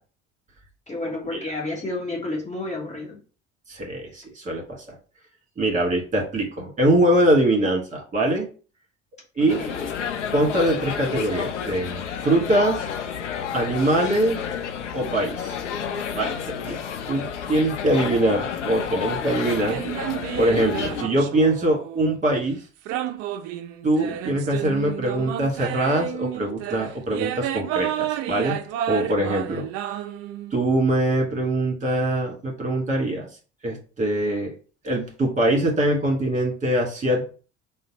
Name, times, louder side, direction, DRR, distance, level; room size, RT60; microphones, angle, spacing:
voice 1, 0.9-3.2 9.4-9.9, left 2 dB, 20° left, -3 dB, 1.4 m, -31 dB
voice 2, 3.7-5.0 5.6-8.5 9.4-9.6 10.3-12.8 13.5-14.4 14.9-15.6 16.1-16.8 17.1-19.8 20.4-22.6 23.8-28.6 28.9-29.7 30.5-33.3 33.6-34.6 34.8-37.2, right 1 dB, 20° right, 0 dB, 1.7 m, -23 dB
sound 1, 9.5-21.0, left 7 dB, 80° left, 0.5 m, -30 dB
sound 2, 19.4-22.2 22.9-30.6, right 11 dB, 45° right, 0.4 m, -31 dB
3.8 x 2.2 x 4.1 m, 0.38 s
figure-of-eight pair, 60°, 35 cm